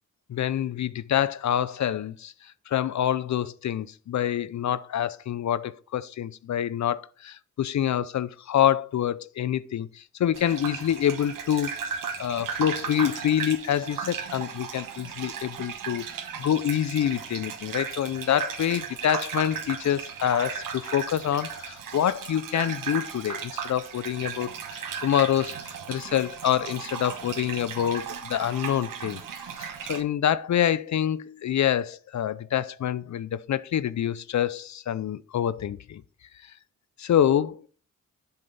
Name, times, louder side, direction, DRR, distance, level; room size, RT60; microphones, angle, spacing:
voice 1, 0.3-16.1 16.4-29.2 29.6-36.0 36.4-36.5 37.0-37.6, left 10 dB, 60° left, 0.5 m, -26 dB
Gurgling / Bathtub (filling or washing), 10.3-30.0, right 7 dB, 90° right, 1.1 m, -36 dB
7.6 x 7.2 x 4.0 m
cardioid pair, 60°, 32 cm